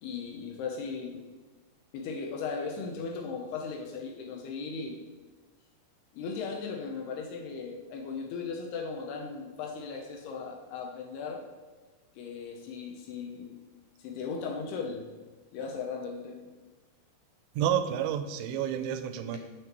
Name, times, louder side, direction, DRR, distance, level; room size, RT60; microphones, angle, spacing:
voice 1, 0.0-1.2 1.9-5.0 6.1-11.4 12.2-13.6 14.0-15.1 15.5-16.5, left 5 dB, 80° left, 1 dB, 2.4 m, -37 dB
voice 2, 17.6-19.4, right 9 dB, 85° right, 9 dB, 2.8 m, -29 dB
7.4 x 6.5 x 2.9 m, 1.3 s
omnidirectional pair, 5.2 m